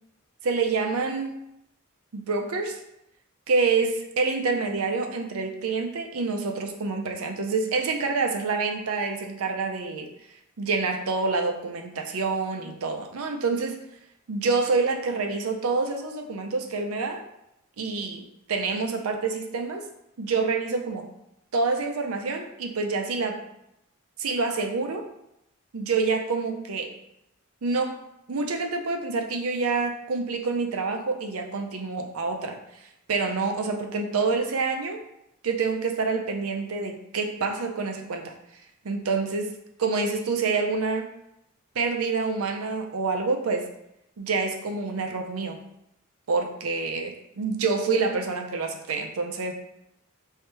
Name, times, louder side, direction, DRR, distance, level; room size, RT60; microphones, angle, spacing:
voice 1, 0.4-1.4 2.1-2.8 3.5-10.1 10.6-13.8 14.3-17.2 17.8-19.8 20.2-21.1 21.5-23.4 24.2-25.0 25.7-26.9 27.6-28.0 28.3-32.6 33.1-35.0 35.4-38.3 38.8-41.1 41.8-43.6 44.2-45.6 46.3-49.5, right 4 dB, 85° right, 4 dB, 0.6 m, -27 dB
3.3 x 2.7 x 4.5 m, 0.81 s
head